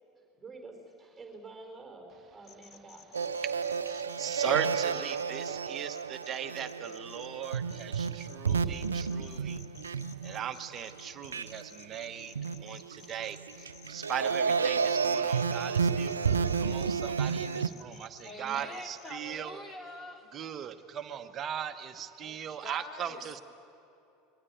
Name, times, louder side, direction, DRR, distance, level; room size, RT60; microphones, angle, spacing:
voice 1, 0.1-3.1, right 3 dB, 10° right, 3 dB, 4.5 m, -49 dB
sound 1, 2.4-5.5 5.9-19.1, left 8 dB, 35° left, 1.3 m, -54 dB
sound 2, 3.1-10.9 11.2-11.8 12.2-17.7, right 6 dB, 80° right, 0.6 m, -31 dB
voice 2, 3.4-12.3 12.6-19.6 20.3-23.4, right 9 dB, 35° right, 10 dB, 1.1 m, -39 dB
voice 3, 18.2-20.3 22.2-23.4, left 1 dB, 15° left, 3 dB, 3.0 m, -45 dB
23.0 x 20.0 x 9.3 m, 2.9 s
figure-of-eight pair, 75°, 0 cm